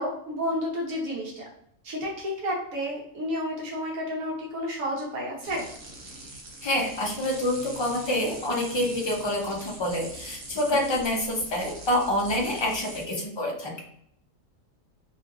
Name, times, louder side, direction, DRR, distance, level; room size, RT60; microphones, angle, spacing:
voice 1, 0.0-1.4 1.8-5.6 10.9-11.0, equal, 85° right, -2 dB, 1.2 m, -31 dB
sound 1, 5.4-13.0, right 1 dB, 60° right, 1.0 m, -43 dB
voice 2, 6.6-13.8, left 1 dB, 40° left, -1 dB, 0.4 m, -27 dB
3.0 x 2.8 x 2.4 m, 0.70 s
omnidirectional pair, 1.4 m